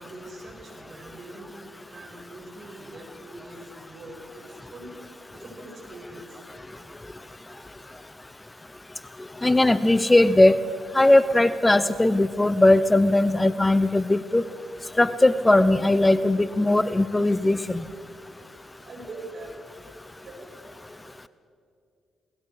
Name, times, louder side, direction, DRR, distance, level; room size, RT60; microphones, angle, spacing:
voice 1, 0.0-5.0 5.3-6.5 8.1-8.3 18.8-19.5 20.2-20.5, right 2 dB, 55° right, -1 dB, 7.1 m, -43 dB
voice 2, 9.4-10.6 10.9-14.4 15.0-17.8, left 2 dB, 20° left, 15 dB, 0.8 m, -19 dB
28.5 x 19.5 x 4.8 m, 2.5 s
hypercardioid pair, 45°, 0 cm